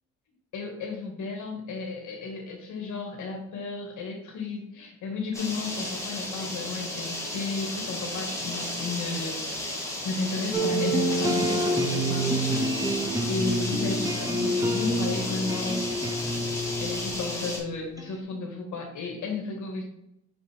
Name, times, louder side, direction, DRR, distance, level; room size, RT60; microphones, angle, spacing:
voice 1, 0.5-12.7 13.3-16.0 16.8-19.8, left 3 dB, 75° left, 1 dB, 1.9 m, -33 dB
sound 1, 5.3-17.6, left 1 dB, 10° left, 2.4 m, -33 dB
sound 2, 10.5-18.1, right 1 dB, 10° right, 1.0 m, -28 dB
6.6 x 5.3 x 3.4 m, 0.81 s
cardioid pair, 90°, 30 cm